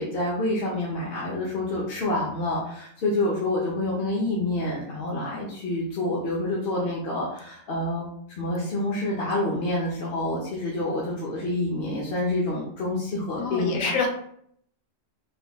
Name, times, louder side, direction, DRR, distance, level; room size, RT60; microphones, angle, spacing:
voice 1, 0.0-8.1 8.4-14.0, left 2 dB, 55° left, -5 dB, 0.8 m, -27 dB
voice 2, 13.4-14.1, left 5 dB, 85° left, 2 dB, 1.1 m, -26 dB
3.4 x 3.0 x 2.3 m, 0.68 s
omnidirectional pair, 1.3 m